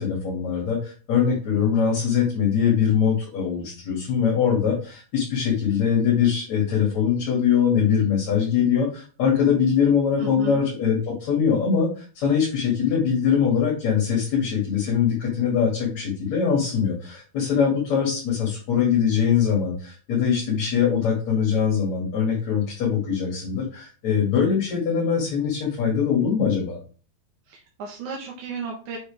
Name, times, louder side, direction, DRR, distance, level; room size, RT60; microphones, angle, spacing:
voice 1, 0.0-26.8, left 7 dB, 55° left, -5 dB, 3.7 m, -22 dB
voice 2, 10.2-10.6 27.5-29.0, right 5 dB, 65° right, -2 dB, 2.8 m, -34 dB
7.9 x 7.0 x 3.6 m, 0.38 s
omnidirectional pair, 3.8 m